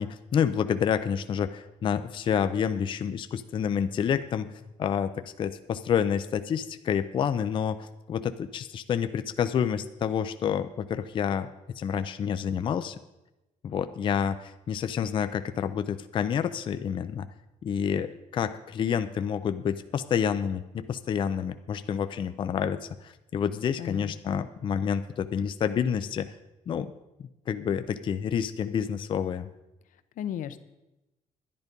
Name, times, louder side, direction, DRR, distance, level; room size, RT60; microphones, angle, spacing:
voice 1, 0.0-4.5 4.8-11.5 11.8-13.0 13.6-17.3 17.6-26.3 26.7-26.9 27.5-29.5, left 8 dB, 35° left, 11 dB, 0.4 m, -28 dB
voice 2, 23.8-24.4 30.2-30.6, left 10 dB, 65° left, 12 dB, 0.7 m, -35 dB
11.0 x 10.5 x 5.2 m, 0.96 s
cardioid pair, 170°, 15 cm